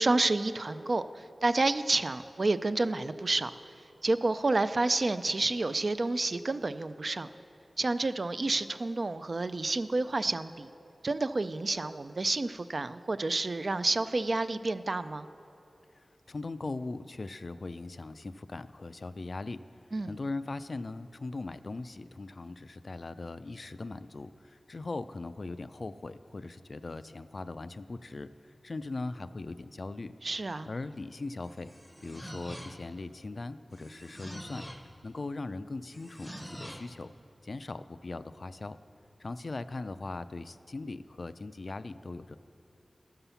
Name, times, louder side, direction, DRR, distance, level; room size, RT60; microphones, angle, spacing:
voice 1, 0.0-3.5 4.0-7.3 7.8-10.7 11.0-15.3 19.9-20.2 30.2-30.7, right 2 dB, 50° right, 12 dB, 0.3 m, -29 dB
voice 2, 15.9-19.6 20.0-28.3 28.6-30.1 30.7-31.7 32.0-34.6 35.0-37.1 37.4-38.8 39.2-42.4, left 3 dB, 55° left, 13 dB, 0.3 m, -39 dB
sound 1, 31.4-33.0 33.7-34.9 35.9-37.0, equal, 5° left, 0.7 m, -45 dB
13.0 x 5.6 x 6.9 m, 2.8 s
wide cardioid pair, 90°, 0 cm